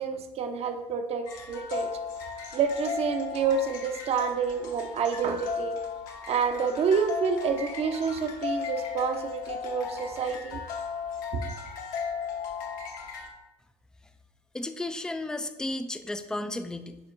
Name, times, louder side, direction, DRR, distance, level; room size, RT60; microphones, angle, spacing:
voice 1, 0.0-1.9 2.5-5.8 6.3-10.6 11.3-11.4, right 6 dB, 35° right, 6 dB, 0.8 m, -28 dB
sound 1, 1.2-13.3, left 6 dB, 50° left, 1.1 m, -36 dB
voice 2, 14.5-17.0, left 2 dB, 5° left, 10 dB, 0.4 m, -33 dB
11.0 x 4.3 x 2.6 m, 0.95 s
figure-of-eight pair, 65°, 17 cm